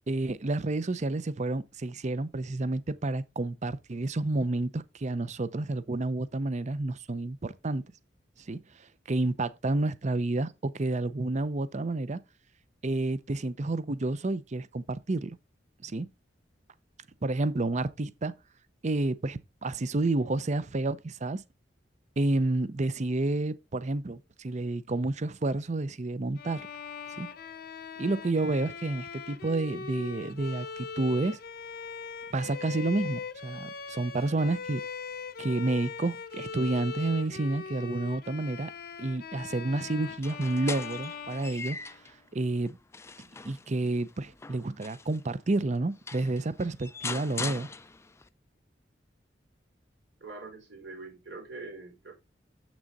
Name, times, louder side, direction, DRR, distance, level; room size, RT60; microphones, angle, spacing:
voice 1, 0.1-7.8 8.5-8.6 9.1-12.2 12.8-15.4 15.8-16.1 17.2-18.3 18.8-21.4 22.2-26.7 27.2-27.3 28.0-31.4 32.3-34.8 35.4-38.7 39.0-41.8 42.3-42.8 43.4-47.7, right 2 dB, 40° right, 0.6 m, -30 dB
Bowed string instrument, 26.4-42.2, left 5 dB, 55° left, 0.8 m, -41 dB
sound 1, 40.1-42.2 42.7-45.2 45.8-45.9 46.1-48.3, left 4 dB, 15° left, 0.4 m, -41 dB
voice 2, 50.2-52.1, right 3 dB, 80° right, 3.8 m, -43 dB
7.4 x 6.2 x 4.0 m
head